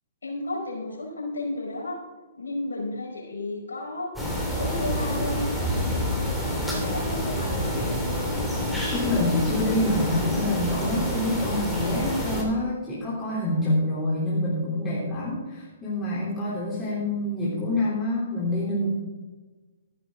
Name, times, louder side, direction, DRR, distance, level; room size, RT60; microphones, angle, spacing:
voice 1, 0.2-2.0 2.4-4.1 4.5-5.5 6.5-8.3, left 2 dB, 80° left, -2 dB, 4.8 m, -33 dB
sound 1, 4.2-12.4, equal, ahead, 3.0 m, -27 dB
voice 2, 8.9-18.9, left 1 dB, 15° left, -8 dB, 3.4 m, -27 dB
14.5 x 10.5 x 3.8 m, 1.3 s
hypercardioid pair, 125°, 0 cm